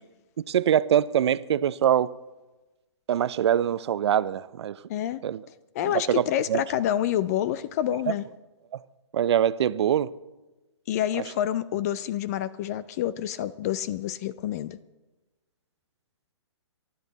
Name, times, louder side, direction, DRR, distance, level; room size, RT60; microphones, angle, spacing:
voice 1, 0.4-2.1 3.1-4.8 5.2-5.4 5.8-6.2 6.5-6.6 8.7-8.8 9.1-10.1, right 10 dB, 60° right, 0.6 m, -23 dB
voice 2, 4.9-5.2 5.7-8.2 10.9-14.8, left 11 dB, 35° left, 0.4 m, -28 dB
23.5 x 11.0 x 4.1 m
hypercardioid pair, 145°, 16 cm